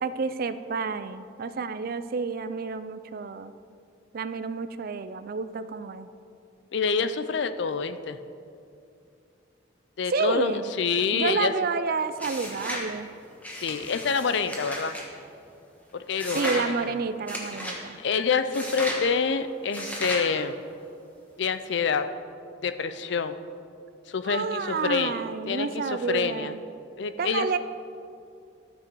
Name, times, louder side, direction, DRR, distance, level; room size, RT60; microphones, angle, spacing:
voice 1, 0.0-3.5 4.1-6.1 10.1-10.7 11.1-13.1 16.3-18.0 24.2-26.6 27.2-27.6, right 4 dB, 50° right, 12 dB, 0.4 m, -29 dB
voice 2, 6.7-8.2 10.0-11.5 13.5-15.0 15.9-16.9 18.0-20.6 21.4-22.1 22.6-23.4 24.1-26.5 27.0-27.5, left 5 dB, 60° left, 11 dB, 0.5 m, -27 dB
sound 1, 12.2-12.9 13.4-15.1 16.2-16.7 17.3-17.8 18.5-19.0 19.7-20.3, equal, 10° left, 1.3 m, -34 dB
13.5 x 6.3 x 4.6 m, 2.5 s
head